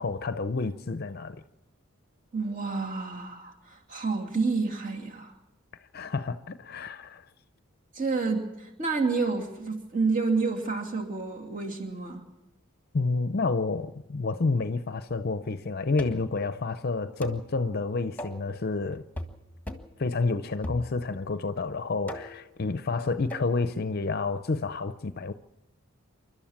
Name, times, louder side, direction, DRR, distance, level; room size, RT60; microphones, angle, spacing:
voice 1, 0.0-1.4 5.9-7.3 12.9-19.0 20.0-25.3, left 3 dB, 45° left, 0.6 m, -29 dB
voice 2, 2.3-5.3 7.9-12.2, right 4 dB, 40° right, 2.7 m, -29 dB
sound 1, 16.0-16.4 17.2-17.5 18.2-18.5 19.2-19.4 19.7-20.0 20.6-21.2 22.1-22.5 23.3-23.5, equal, 10° left, 1.6 m, -39 dB
28.5 x 12.5 x 7.3 m
head